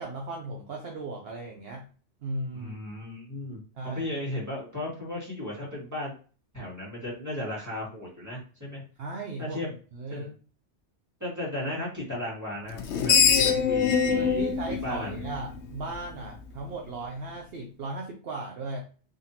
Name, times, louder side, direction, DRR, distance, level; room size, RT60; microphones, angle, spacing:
voice 1, 0.0-1.8 2.2-2.8 3.8-4.1 9.0-9.6 9.9-10.3 14.1-18.9, right 2 dB, 60° right, 1 dB, 0.9 m, -36 dB
voice 2, 2.5-6.1 6.5-8.8 9.4-9.7 10.1-10.3 11.2-15.2, left 1 dB, 15° right, -5 dB, 2.0 m, -35 dB
Screech, 12.7-16.0, left 6 dB, 70° left, 0.9 m, -24 dB
3.9 x 3.3 x 2.8 m, 0.38 s
omnidirectional pair, 1.2 m